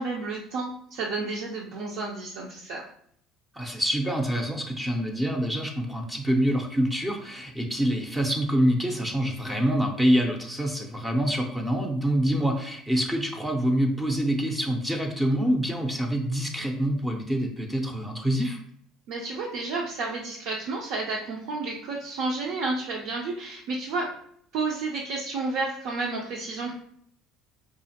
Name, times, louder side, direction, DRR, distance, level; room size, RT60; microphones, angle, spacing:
voice 1, 0.0-2.8 19.1-24.1 24.5-26.7, right 3 dB, 75° right, -3 dB, 0.6 m, -31 dB
voice 2, 3.5-18.6, equal, 10° right, 3 dB, 0.5 m, -26 dB
4.8 x 2.5 x 2.8 m, 0.66 s
cardioid pair, 125°, 0 cm